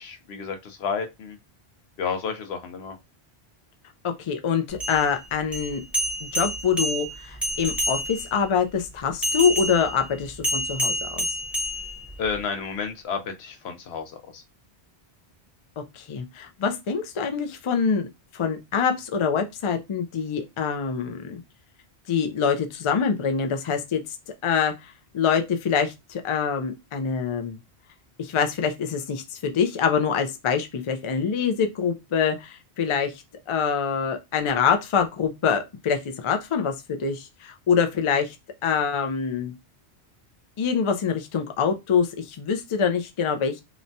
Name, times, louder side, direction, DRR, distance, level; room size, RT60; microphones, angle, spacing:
voice 1, 0.0-1.4 2.0-3.0 12.2-14.4, left 6 dB, 80° left, 0.9 m, -31 dB
voice 2, 4.0-5.8 6.2-11.3 15.8-18.1 18.3-21.4 22.1-24.0 24.4-27.6 28.2-33.1 33.5-38.3 38.6-39.5 40.6-43.6, left 6 dB, 55° left, 0.3 m, -25 dB
sound 1, 4.7-8.4 9.2-12.4, equal, ahead, 0.7 m, -29 dB
2.9 x 2.1 x 2.6 m
omnidirectional pair, 1.1 m